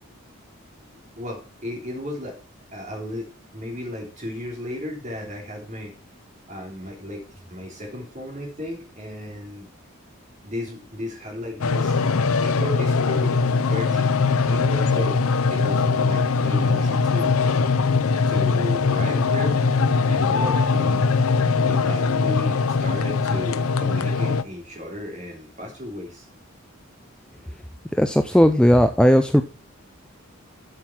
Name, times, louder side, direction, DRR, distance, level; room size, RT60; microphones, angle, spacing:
voice 1, 1.2-2.4 2.7-3.3 3.5-5.9 6.5-9.7 10.4-12.0 12.3-13.3 13.7-14.1 14.4-17.3 18.3-19.8 20.1-21.1 21.6-26.2, left 1 dB, 35° right, 0 dB, 3.4 m, -34 dB
sound 1, 11.6-24.4, left 4 dB, 85° left, 0.6 m, -21 dB
voice 2, 28.0-29.4, equal, 5° left, 7 dB, 0.4 m, -16 dB
8.0 x 6.5 x 5.8 m, 0.35 s
head